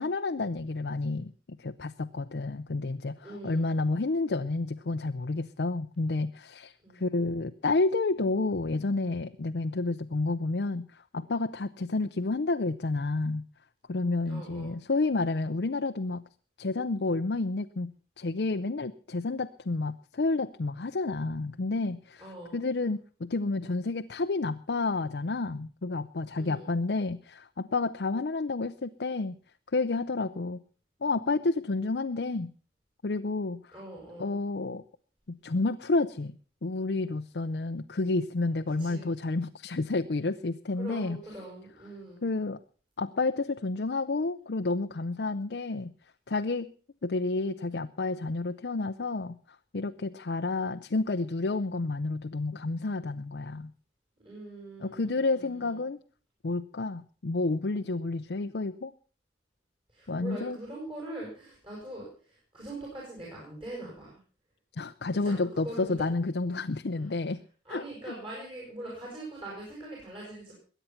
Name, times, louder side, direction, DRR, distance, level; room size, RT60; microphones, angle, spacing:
voice 1, 0.0-1.3 1.6-13.4 13.9-16.2 16.6-17.9 18.2-29.4 29.7-30.6 31.0-32.5 33.0-33.6 34.2-34.8 35.3-41.2 42.2-42.6 43.0-45.9 46.3-46.7 47.0-49.4 49.7-53.7 54.8-56.0 56.4-58.9 60.1-60.6 64.8-67.4 67.7-68.2, left 3 dB, 70° left, 7 dB, 0.6 m, -30 dB
voice 2, 3.2-3.8 6.8-7.0 14.3-14.7 22.2-22.6 26.3-26.7 33.7-34.4 38.8-39.1 40.8-42.2 54.2-55.8 59.9-64.2 65.2-65.9 67.7-70.5, right 1 dB, 30° right, -4 dB, 7.0 m, -42 dB
21.5 x 9.2 x 5.8 m, 0.41 s
head